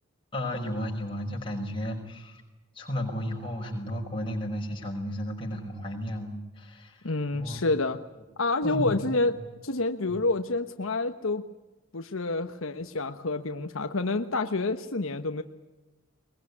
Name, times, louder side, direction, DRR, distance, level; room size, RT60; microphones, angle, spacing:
voice 1, 0.3-2.4 2.7-7.1 7.4-7.6 8.6-9.0 10.1-10.2, equal, 25° left, -1 dB, 6.0 m, -33 dB
voice 2, 7.0-8.0 8.4-11.4 11.9-15.4, left 2 dB, 80° left, 7 dB, 1.2 m, -28 dB
22.0 x 22.0 x 9.8 m, 1.1 s
head